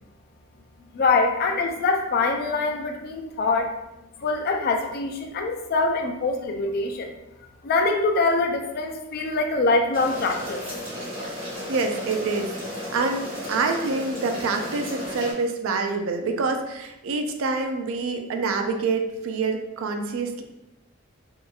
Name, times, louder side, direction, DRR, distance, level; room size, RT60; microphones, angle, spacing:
voice 1, 0.9-3.7 4.2-7.1 7.6-10.6, left 3 dB, 45° left, 3 dB, 0.3 m, -24 dB
sound 1, 9.9-15.3, left 1 dB, 25° right, 0.9 m, -34 dB
voice 2, 11.2-12.5 12.9-20.4, right 4 dB, 75° right, 5 dB, 0.3 m, -26 dB
2.8 x 2.3 x 2.2 m, 0.92 s
head